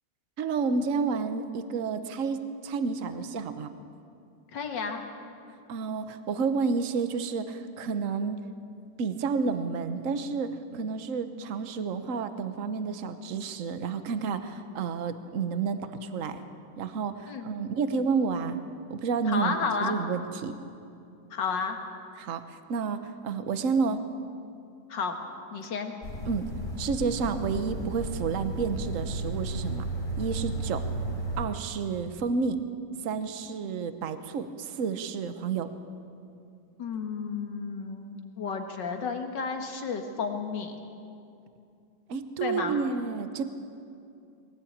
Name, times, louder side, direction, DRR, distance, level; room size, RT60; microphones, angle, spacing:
voice 1, 0.4-2.4 2.6-3.7 5.7-8.4 9.0-16.4 16.8-18.6 18.9-20.6 22.2-24.0 26.3-26.5 26.8-29.9 30.2-30.8 31.4-32.6 33.0-35.7 42.1-43.4, right 5 dB, 50° right, 10 dB, 1.3 m, -30 dB
voice 2, 4.5-5.0 17.3-17.5 19.3-20.0 21.3-21.8 24.9-25.2 25.5-25.9 36.8-40.8 42.4-42.8, left 5 dB, 85° left, 5 dB, 2.3 m, -32 dB
sound 1, 26.0-31.5, right 1 dB, 60° left, 5.3 m, -33 dB
22.0 x 18.0 x 8.8 m, 2.6 s
omnidirectional pair, 1.9 m